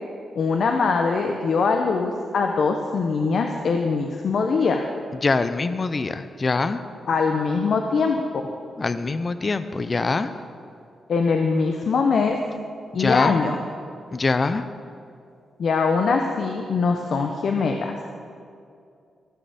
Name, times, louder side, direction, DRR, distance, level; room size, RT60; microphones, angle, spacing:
voice 1, 0.3-4.9 7.1-8.5 11.1-12.4 12.9-13.6 15.6-18.0, left 4 dB, 60° left, 4 dB, 0.7 m, -22 dB
voice 2, 5.2-6.8 8.8-10.3 13.0-13.4 14.1-14.6, left 3 dB, 30° left, 11 dB, 0.5 m, -23 dB
14.5 x 6.4 x 6.9 m, 2.4 s
wide cardioid pair, 130°, 0 cm